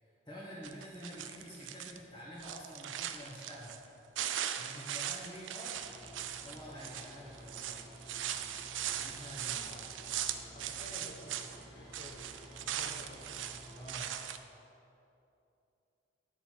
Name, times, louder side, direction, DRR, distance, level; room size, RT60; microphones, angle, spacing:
voice 1, 0.0-3.7 4.6-5.8 6.4-7.7 8.9-9.7 13.7-14.1, equal, 20° left, -9 dB, 1.4 m, -48 dB
sound 1, 0.6-2.0 2.3-3.9 4.1-11.6 11.9-14.4, right 10 dB, 80° right, 0.4 m, -40 dB
sound 2, 5.7-13.8, equal, 5° right, 1.8 m, -53 dB
voice 2, 9.5-9.8 10.5-12.3 12.6-13.2, left 1 dB, 45° left, 2 dB, 0.9 m, -52 dB
9.4 x 6.8 x 4.5 m, 2.8 s
head